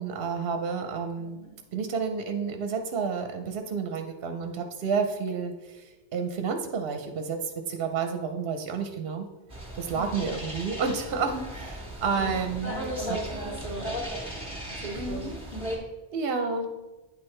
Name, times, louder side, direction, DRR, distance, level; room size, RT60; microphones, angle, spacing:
voice 1, 0.0-1.4 1.7-9.3 9.7-12.7 13.1-13.2 14.9-15.4 16.1-16.7, right 5 dB, 65° right, 6 dB, 0.8 m, -30 dB
voice 2, 1.2-1.6 9.8-10.3 12.1-13.9 14.7-15.6, right 1 dB, 80° left, -5 dB, 2.3 m, -40 dB
sound 1, 9.5-15.8, equal, 5° right, 1.5 m, -36 dB
9.4 x 4.6 x 3.2 m, 1.1 s
omnidirectional pair, 1.1 m